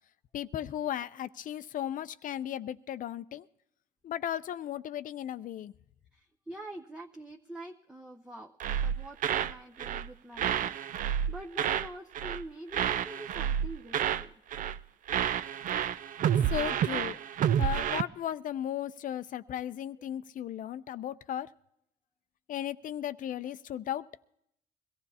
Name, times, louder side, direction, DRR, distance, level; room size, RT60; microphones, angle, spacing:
voice 1, 0.3-3.4 4.0-5.7 16.5-17.2 17.6-21.5 22.5-24.0, left 11 dB, 50° left, 14 dB, 0.5 m, -36 dB
voice 2, 6.1-8.5 8.8-14.4 19.5-19.6, right 1 dB, 5° right, 2 dB, 0.7 m, -46 dB
sound 1, 8.6-9.5 9.8-10.1 10.4-11.9 12.1-12.4 12.7-14.3 14.5-14.8 15.1-18.0, right 9 dB, 50° right, 0.5 m, -29 dB
23.0 x 15.0 x 2.8 m, 0.76 s
cardioid pair, 110°, 17 cm